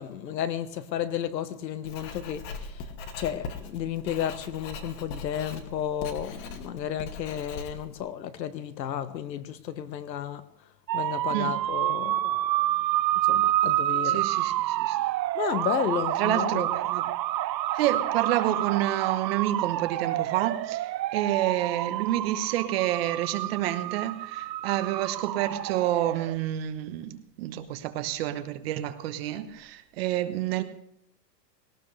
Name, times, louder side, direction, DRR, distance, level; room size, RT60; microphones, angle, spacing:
voice 1, 0.0-2.8 3.2-10.5 10.9-12.4 13.2-14.3 15.3-16.7, left 9 dB, 85° left, 1.5 m, -32 dB
Writing, 1.8-8.0, left 4 dB, 30° left, 1.3 m, -40 dB
sound 1, 10.9-26.4, right 14 dB, 85° right, 0.7 m, -28 dB
voice 2, 14.0-15.0 16.2-17.1 17.8-30.6, right 13 dB, 35° right, 1.0 m, -29 dB
20.0 x 18.0 x 3.3 m
supercardioid pair, 165°, 50 cm